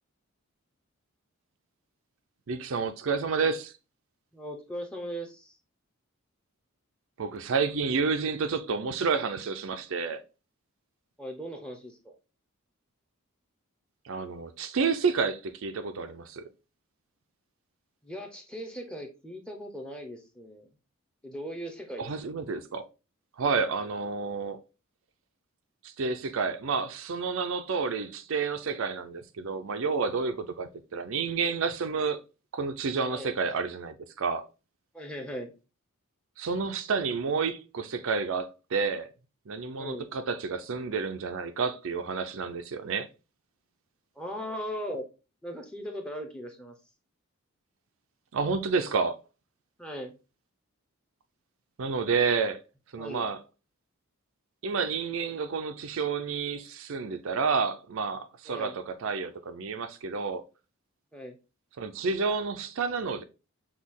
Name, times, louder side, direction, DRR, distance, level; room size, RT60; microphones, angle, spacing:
voice 1, 2.5-3.7 7.2-10.2 14.1-16.4 22.0-22.8 23.4-24.6 25.8-32.2 32.5-34.4 36.4-39.1 39.5-43.1 48.3-49.2 51.8-52.6 52.9-53.4 54.6-60.4 61.8-63.2, right 5 dB, 65° right, 0.4 m, -30 dB
voice 2, 4.3-5.6 11.2-12.1 18.0-20.7 21.2-22.1 33.1-33.3 34.9-35.5 39.8-40.1 44.2-45.0 45.4-46.7 49.8-50.1 53.0-53.3 58.5-58.8 61.1-61.4, equal, 5° left, 0.7 m, -38 dB
6.1 x 2.3 x 3.6 m
head